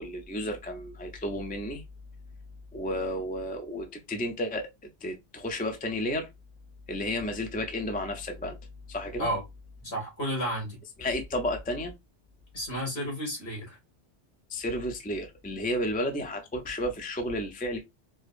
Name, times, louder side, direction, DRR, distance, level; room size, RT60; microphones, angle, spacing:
voice 1, 0.0-1.8 2.7-4.7 5.0-6.3 6.9-8.6 8.9-9.3 11.0-11.9 14.5-17.8, left 1 dB, 10° left, 0.4 m, -32 dB
voice 2, 9.8-10.8 12.5-13.8, equal, 60° left, 2.2 m, -32 dB
4.7 x 2.0 x 2.5 m
omnidirectional pair, 1.2 m